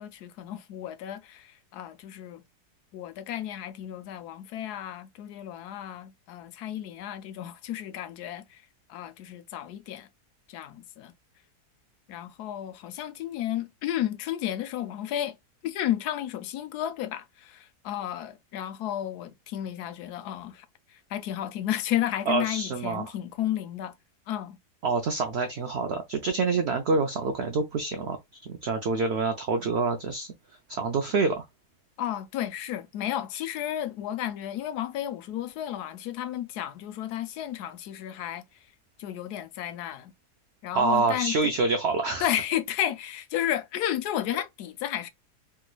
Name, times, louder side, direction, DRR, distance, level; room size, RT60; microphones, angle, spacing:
voice 1, 0.0-2.4 2.9-8.6 8.9-10.1 10.5-11.1 12.1-15.3 15.6-20.6 20.9-23.9 24.3-24.6 32.0-38.4 39.0-40.1 40.6-41.5 42.2-45.1, left 11 dB, 80° left, 1.1 m, -32 dB
voice 2, 22.3-23.1 24.8-30.3 30.7-31.5 40.7-42.3, right 4 dB, 90° right, 0.5 m, -27 dB
3.4 x 3.0 x 2.3 m
omnidirectional pair, 1.7 m